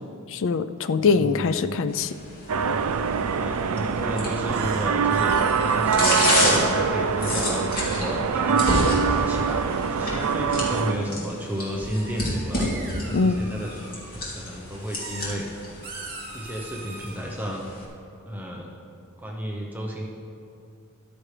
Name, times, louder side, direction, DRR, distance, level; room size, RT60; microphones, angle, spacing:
voice 1, 0.3-2.1 13.1-13.4, left 4 dB, 60° left, 11 dB, 0.4 m, -23 dB
voice 2, 1.0-1.8 3.3-12.7 13.0-15.5 16.3-17.6 18.2-18.7 19.2-20.0, equal, 10° right, -2 dB, 0.9 m, -32 dB
sound 1, 1.9-17.8, left 1 dB, 40° left, 2.8 m, -30 dB
sound 2, 2.5-10.9, right 6 dB, 75° right, 0.5 m, -24 dB
sound 3, 4.5-6.6 8.9-11.0 11.8-14.1 14.8-15.3 15.8-17.2, right 3 dB, 45° right, 2.6 m, -42 dB
13.5 x 12.5 x 3.3 m, 2.5 s
head